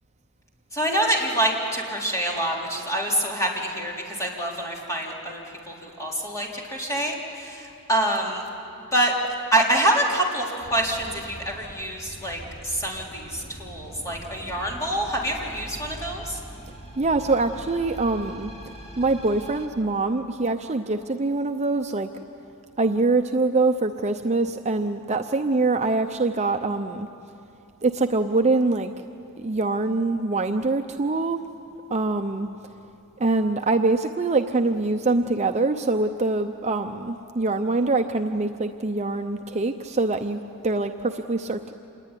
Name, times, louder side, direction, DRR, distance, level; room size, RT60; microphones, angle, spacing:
voice 1, 0.7-8.4 8.9-9.1 9.5-16.4, right 1 dB, 15° left, -2 dB, 3.9 m, -26 dB
sound 1, 10.6-19.7, right 1 dB, 30° left, 2.8 m, -42 dB
voice 2, 17.0-18.5 19.0-22.1 22.8-27.1 27.8-28.9 29.4-31.4 31.9-32.5 33.2-41.7, right 3 dB, 30° right, 5 dB, 0.7 m, -24 dB
27.0 x 20.5 x 10.0 m, 2.7 s
head